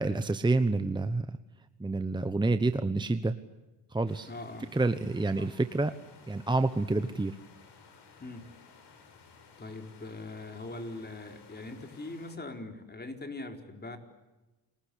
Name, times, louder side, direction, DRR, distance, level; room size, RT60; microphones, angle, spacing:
voice 1, 0.0-1.4 1.8-3.4 3.9-4.3 4.7-5.9 6.3-7.4, right 2 dB, 10° right, 10 dB, 1.1 m, -28 dB
sound 1, 4.1-12.4, left 5 dB, 60° left, 5.9 m, -56 dB
voice 2, 4.3-4.7 5.4-5.5 8.2-8.5 9.6-14.0, left 2 dB, 20° left, 6 dB, 4.4 m, -41 dB
30.0 x 21.5 x 8.5 m, 1.1 s
cardioid pair, 95°, 46 cm